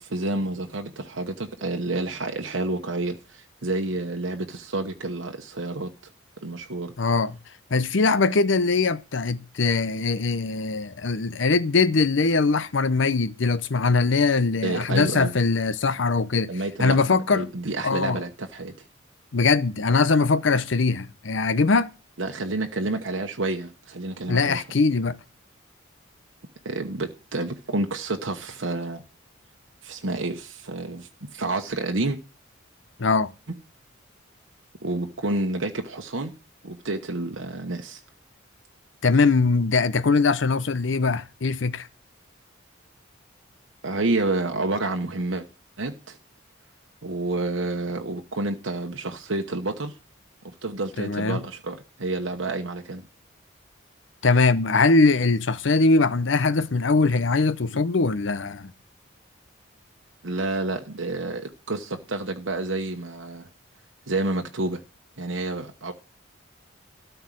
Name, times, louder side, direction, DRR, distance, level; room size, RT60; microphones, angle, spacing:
voice 1, 0.0-5.9 6.4-6.9 14.6-15.3 16.5-18.7 22.2-24.6 26.6-29.0 29.8-32.2 34.8-36.3 36.6-38.0 43.8-45.5 45.8-46.2 47.0-50.0 50.6-53.0 60.2-63.5 64.1-64.8 65.2-65.9, right 2 dB, 70° right, 1.1 m, -29 dB
voice 2, 7.0-7.4 7.7-16.5 16.8-17.5 17.8-18.2 19.3-21.9 24.3-25.2 33.0-33.3 39.0-41.9 51.0-51.4 54.2-58.7, left 4 dB, 70° left, 0.7 m, -21 dB
13.0 x 4.7 x 7.7 m
head